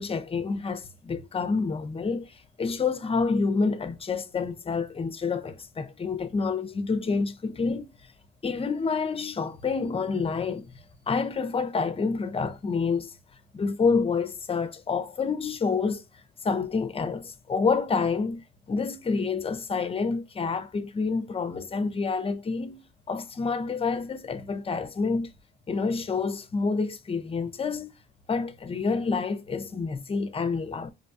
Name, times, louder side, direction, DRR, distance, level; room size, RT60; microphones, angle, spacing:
voice 1, 0.0-8.1 8.4-13.1 13.5-18.4 18.7-25.3 25.7-27.9 28.3-30.9, left 4 dB, 30° left, 0.6 m, -28 dB
5.1 x 2.2 x 2.6 m
cardioid pair, 90°, 20 cm